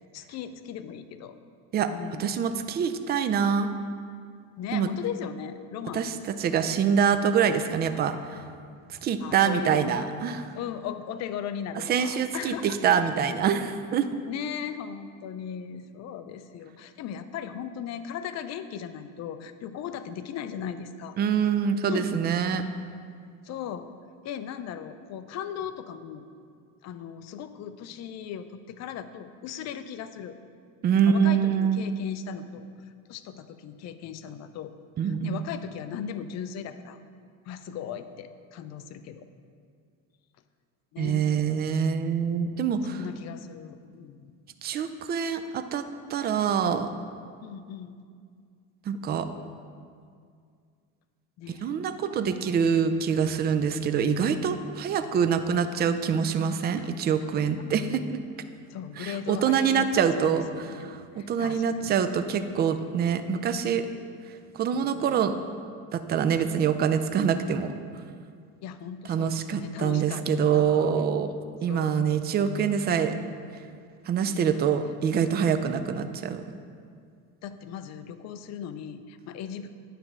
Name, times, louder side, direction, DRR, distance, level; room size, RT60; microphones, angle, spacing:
voice 1, 0.1-1.3 1.8-2.4 4.6-6.6 9.2-10.1 10.5-12.8 14.2-21.2 21.9-22.1 23.4-23.9 24.2-26.2 26.8-30.4 31.0-32.7 33.1-34.7 35.0-37.0 37.5-39.3 40.9-41.3 42.8-44.3 47.4-48.0 51.4-51.8 56.8-56.9 58.7-59.9 60.2-62.0 64.7-65.2 68.6-70.2 70.5-70.9 71.7-72.2 74.2-74.6 77.4-79.7, left 8 dB, 45° left, 10 dB, 0.5 m, -38 dB
voice 2, 2.2-3.7 4.7-4.9 5.9-8.4 9.0-10.4 11.8-14.1 21.2-22.6 30.8-31.8 35.0-35.4 41.0-43.0 44.6-45.8 46.1-46.9 48.9-49.3 51.5-58.2 59.0-60.5 60.8-63.9 64.5-65.3 65.9-67.7 69.1-71.3 71.6-73.2 74.1-76.5, right 7 dB, 25° right, 10 dB, 0.3 m, -25 dB
9.3 x 3.3 x 6.0 m, 2.2 s
supercardioid pair, 110°, 39 cm